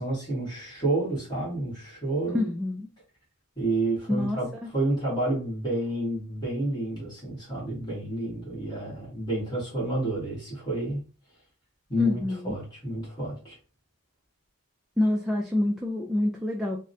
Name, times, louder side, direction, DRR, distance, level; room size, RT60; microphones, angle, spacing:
voice 1, 0.0-2.5 3.5-4.5 4.7-11.0 11.9-13.6, right 1 dB, 20° left, -6 dB, 1.6 m, -29 dB
voice 2, 2.3-2.9 4.1-4.7 12.0-12.6 15.0-16.8, left 1 dB, ahead, -1 dB, 0.4 m, -27 dB
3.5 x 2.1 x 2.6 m, 0.35 s
head